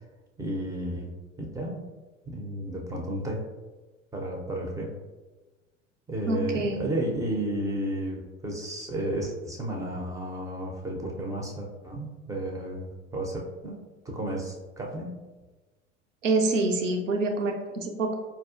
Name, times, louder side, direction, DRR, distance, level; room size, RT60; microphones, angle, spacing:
voice 1, 0.4-1.8 2.3-3.5 4.1-4.9 6.1-13.8 14.1-15.2, right 1 dB, 10° right, -1 dB, 0.4 m, -32 dB
voice 2, 6.3-6.9 16.2-18.1, right 2 dB, 85° right, 3 dB, 0.5 m, -26 dB
4.2 x 2.3 x 2.4 m, 1.2 s
figure-of-eight pair, 75°, 37 cm